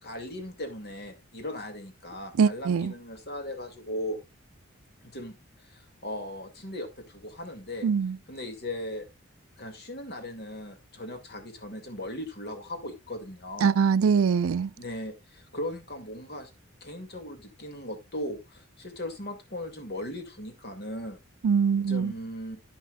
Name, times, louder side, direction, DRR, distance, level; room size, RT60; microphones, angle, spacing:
voice 1, 0.0-4.2 5.0-5.3 5.7-7.9 8.3-9.0 9.6-13.8 14.8-16.5 16.8-21.2 21.8-22.6, left 1 dB, 50° left, 2.2 m, -38 dB
voice 2, 2.4-2.9 7.8-8.2 13.6-14.7 21.4-22.1, right 6 dB, 80° right, 0.4 m, -23 dB
10.0 x 10.0 x 2.3 m
head